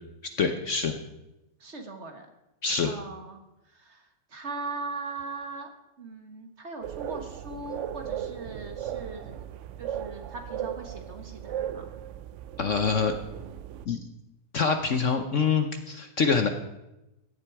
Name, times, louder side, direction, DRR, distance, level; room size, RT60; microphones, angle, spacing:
voice 1, 0.2-1.0 2.6-3.0 12.6-13.1 13.9-14.1 14.5-16.5, left 5 dB, 55° left, 7 dB, 1.0 m, -25 dB
voice 2, 1.6-2.3 2.8-3.4 3.7-5.7 6.0-9.5 9.8-11.9, right 3 dB, 40° right, 6 dB, 1.5 m, -40 dB
sound 1, 6.8-13.9, right 10 dB, 75° right, 0.7 m, -37 dB
16.0 x 10.5 x 4.7 m, 0.94 s
omnidirectional pair, 1.9 m